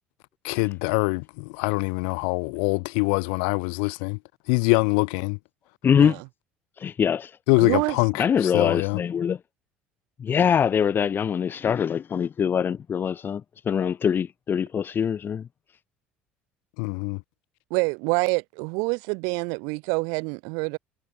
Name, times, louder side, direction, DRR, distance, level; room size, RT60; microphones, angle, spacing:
voice 1, 0.4-4.2 4.5-5.4 7.5-9.0 16.8-17.2, left 40 dB or more, 75° left, 1.1 m, -24 dB
voice 2, 5.8-6.2 6.8-7.4 8.2-9.4 10.2-15.5, left 7 dB, 40° left, 0.8 m, -23 dB
voice 3, 7.6-8.0 17.7-20.8, right 33 dB, 70° right, 0.7 m, -26 dB
hypercardioid pair, 65°, 5 cm